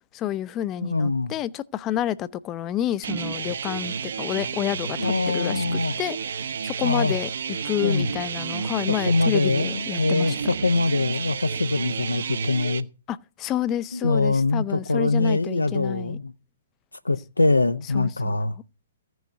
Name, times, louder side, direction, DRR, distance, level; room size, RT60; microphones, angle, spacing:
voice 1, 0.1-5.6 6.0-7.3 7.6-10.5 13.1-16.2 17.9-18.4, left 11 dB, 25° left, 0.6 m, -29 dB
voice 2, 0.9-1.3 5.0-5.9 6.8-7.2 7.8-8.1 8.9-12.9 13.9-16.3 17.0-18.5, left 3 dB, 80° left, 0.7 m, -23 dB
sound 1, 3.0-12.8, right 6 dB, 60° right, 0.9 m, -31 dB
15.0 x 6.4 x 7.9 m
figure-of-eight pair, 120°, 0 cm